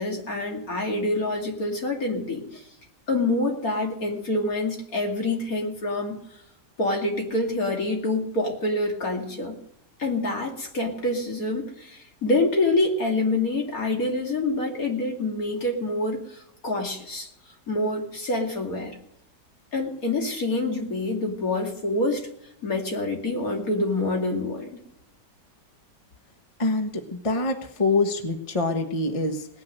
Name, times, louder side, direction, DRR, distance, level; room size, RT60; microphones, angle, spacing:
voice 1, 0.0-2.7 3.1-6.2 6.8-9.6 10.0-17.3 17.7-19.0 19.7-22.3 22.6-24.8, left 2 dB, 55° left, 1 dB, 2.9 m, -26 dB
voice 2, 26.6-29.5, left 3 dB, 20° left, 5 dB, 1.2 m, -25 dB
18.5 x 9.6 x 6.5 m, 0.76 s
omnidirectional pair, 1.8 m